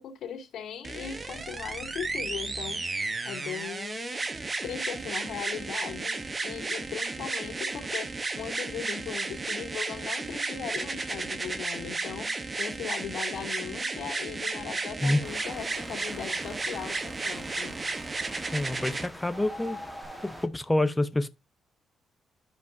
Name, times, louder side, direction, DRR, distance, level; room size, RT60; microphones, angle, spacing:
voice 1, 0.0-3.0 3.2-4.2 4.6-8.1 8.3-17.8, left 8 dB, 70° left, 2.9 m, -39 dB
sound 1, 0.8-19.1 20.0-20.1, right 3 dB, 30° right, 0.9 m, -33 dB
sound 2, 15.2-20.5, equal, 5° right, 1.4 m, -44 dB
voice 2, 18.5-19.8 20.2-21.3, left 1 dB, 10° left, 0.7 m, -27 dB
12.0 x 5.2 x 2.6 m
cardioid pair, 90°, 0 cm